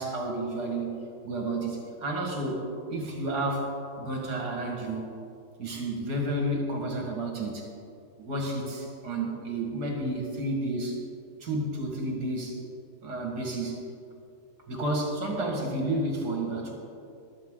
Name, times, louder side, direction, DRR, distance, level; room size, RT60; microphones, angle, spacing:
voice 1, 0.0-2.6 2.9-5.1 5.6-7.7 8.2-11.0 11.4-12.6 13.0-13.8 14.7-16.8, right 1 dB, 60° right, 0 dB, 2.5 m, -31 dB
14.5 x 13.0 x 3.9 m, 2.5 s
omnidirectional pair, 1.9 m